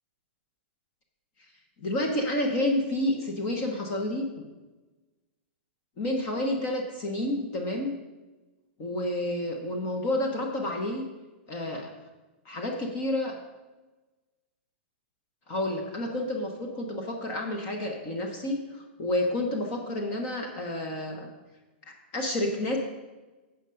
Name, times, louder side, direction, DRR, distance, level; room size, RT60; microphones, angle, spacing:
voice 1, 1.8-4.5 6.0-7.9 8.8-11.0 11.5-11.9 12.4-13.3 15.5-21.3 21.9-22.8, left 1 dB, 25° left, 2 dB, 1.0 m, -30 dB
8.0 x 5.7 x 7.6 m, 1.2 s
supercardioid pair, 175°, 6 cm